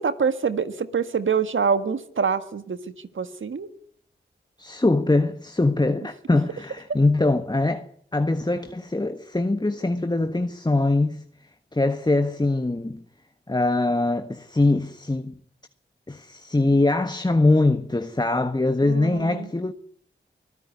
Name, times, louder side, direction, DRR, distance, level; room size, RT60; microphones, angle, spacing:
voice 1, 0.0-2.8 3.1-3.7 18.8-19.5, right 6 dB, 80° right, 1.7 m, -25 dB
voice 2, 4.6-7.9 8.1-11.2 11.7-13.0 13.5-15.3 16.1-19.7, left 2 dB, 20° left, 1.4 m, -22 dB
24.5 x 14.0 x 9.8 m
cardioid pair, 50°, 20 cm